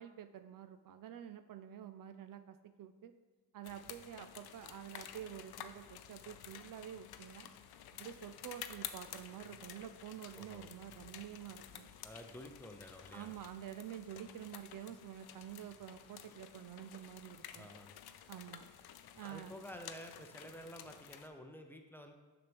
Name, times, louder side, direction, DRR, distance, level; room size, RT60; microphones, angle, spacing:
voice 1, 0.0-3.1 3.5-7.5 7.9-11.9 13.1-17.7 18.3-18.7 19.2-19.5, right 10 dB, 60° right, 10 dB, 0.5 m, -49 dB
sound 1, 3.6-21.3, left 10 dB, 80° left, 0.6 m, -52 dB
voice 2, 12.0-13.3 17.5-17.9 19.2-22.1, equal, 5° left, 4 dB, 0.6 m, -51 dB
6.6 x 6.0 x 3.5 m, 1.4 s
cardioid pair, 105°, 38 cm